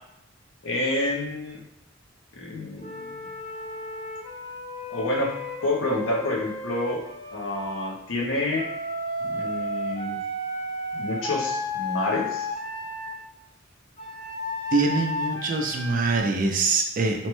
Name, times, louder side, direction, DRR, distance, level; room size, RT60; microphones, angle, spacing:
voice 1, 0.6-1.6 2.3-3.2 4.9-7.0 7.3-8.7 9.2-10.2 10.9-12.5, left 2 dB, 90° left, -1 dB, 0.7 m, -28 dB
Wind instrument woodwind instrument, 2.8-7.9 8.5-13.2 14.0-16.2, left 1 dB, 25° left, 0.4 m, -33 dB
voice 2, 14.7-17.3, right 3 dB, 45° right, 3 dB, 0.4 m, -24 dB
3.0 x 2.1 x 3.0 m, 0.80 s
head